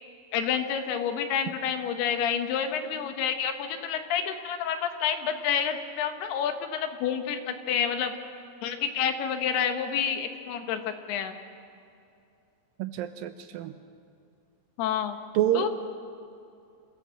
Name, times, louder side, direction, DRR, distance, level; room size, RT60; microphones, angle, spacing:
voice 1, 0.3-8.1 8.6-11.4 14.8-15.2 15.5-15.7, left 8 dB, 75° left, 7 dB, 3.1 m, -29 dB
voice 2, 12.8-13.7 15.3-15.7, right 11 dB, 80° right, 9 dB, 2.1 m, -27 dB
25.5 x 16.0 x 7.6 m, 2.6 s
omnidirectional pair, 4.7 m